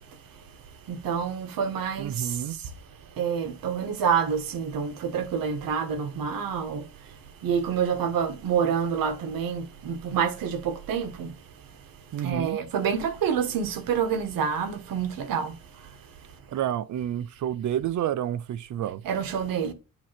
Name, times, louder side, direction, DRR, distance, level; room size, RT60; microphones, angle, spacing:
voice 1, 0.9-2.4 3.2-6.9 7.4-11.3 12.2-15.6 19.0-19.7, right 7 dB, 85° right, 1.7 m, -27 dB
voice 2, 2.0-2.6 12.1-12.6 16.5-19.0, right 10 dB, 60° right, 0.7 m, -29 dB
8.8 x 3.1 x 5.9 m
cardioid pair, 170°, 33 cm